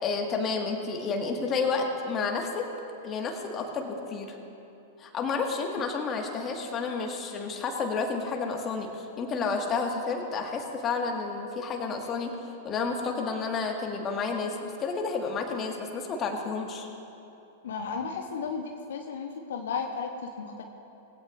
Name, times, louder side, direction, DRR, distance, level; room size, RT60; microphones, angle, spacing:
voice 1, 0.0-2.6 3.0-4.4 5.0-12.3 12.6-16.9, left 4 dB, 30° left, 2 dB, 1.8 m, -30 dB
voice 2, 17.6-20.6, left 5 dB, 65° left, 2 dB, 1.0 m, -34 dB
20.5 x 15.5 x 2.6 m, 2.9 s
figure-of-eight pair, 95°, 0 cm